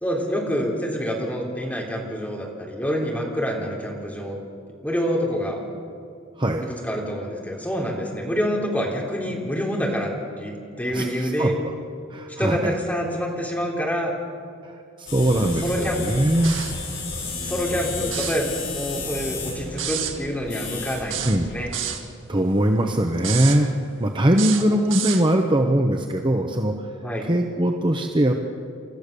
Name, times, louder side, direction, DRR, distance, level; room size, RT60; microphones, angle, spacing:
voice 1, 0.0-4.4 4.8-5.6 6.6-10.1 10.4-11.6 12.4-14.1 15.3-16.2 17.4-21.7 27.0-27.3, equal, 10° left, -2 dB, 3.7 m, -27 dB
voice 2, 10.8-11.7 12.1-12.7 14.6-16.6 21.2-21.5 22.3-23.7 24.0-26.8 27.2-28.4, right 1 dB, 25° right, 3 dB, 1.0 m, -21 dB
sound 1, 15.1-21.7, left 3 dB, 65° left, 7.0 m, -32 dB
sound 2, 16.4-16.8 18.0-18.4 19.8-20.2 21.1-22.0 23.2-23.6 24.3-25.2, right 10 dB, 75° right, 1.9 m, -29 dB
29.5 x 14.0 x 6.9 m, 2.4 s
head